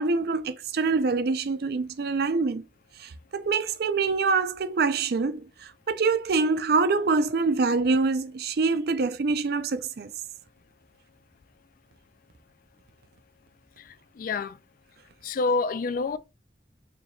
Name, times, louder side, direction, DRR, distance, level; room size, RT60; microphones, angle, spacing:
voice 1, 0.0-2.6 3.0-5.4 5.9-10.1, right 4 dB, 60° right, 0.4 m, -25 dB
voice 2, 13.8-14.6 15.2-16.2, left 4 dB, 50° left, 0.3 m, -28 dB
4.4 x 2.8 x 2.6 m
head